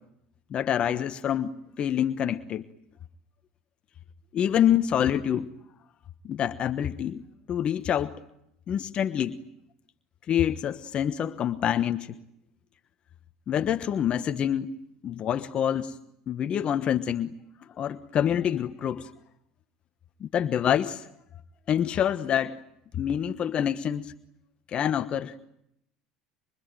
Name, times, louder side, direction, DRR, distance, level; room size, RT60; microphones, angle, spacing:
voice 1, 0.5-2.6 4.3-5.5 6.2-7.2 7.5-8.1 8.7-9.4 10.3-12.2 13.5-14.7 15.0-15.9 16.3-17.3 17.8-19.1 20.2-21.1 21.7-22.6 22.9-24.1 24.7-25.3, left 9 dB, 45° left, 10 dB, 1.3 m, -26 dB
25.5 x 24.5 x 9.1 m, 0.79 s
supercardioid pair, 95°, 3 cm